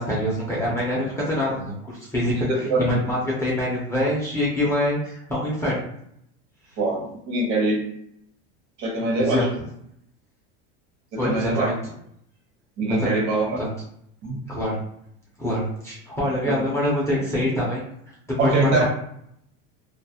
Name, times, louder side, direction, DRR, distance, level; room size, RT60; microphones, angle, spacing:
voice 1, 0.0-2.5 2.8-5.9 9.2-9.5 11.2-11.7 12.9-13.2 13.6-13.7 14.5-14.8 15.4-17.8 18.4-18.9, left 1 dB, 10° left, -7 dB, 0.4 m, -25 dB
voice 2, 2.3-3.0 6.8-7.8 8.8-9.5 11.1-11.7 12.8-13.6 14.2-14.4 16.4-16.6 18.4-18.9, right 2 dB, 55° right, 0 dB, 0.9 m, -23 dB
2.3 x 2.0 x 2.7 m, 0.71 s
cardioid pair, 155°, 34 cm